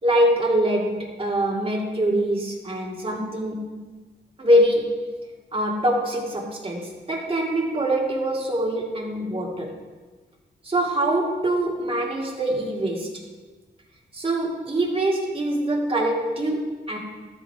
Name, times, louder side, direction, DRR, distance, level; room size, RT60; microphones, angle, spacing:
voice 1, 0.0-3.7 4.4-5.0 5.5-9.7 10.6-13.1 14.1-17.0, right 1 dB, 30° right, -1 dB, 2.2 m, -24 dB
13.0 x 7.9 x 4.7 m, 1.3 s
cardioid pair, 100°, 19 cm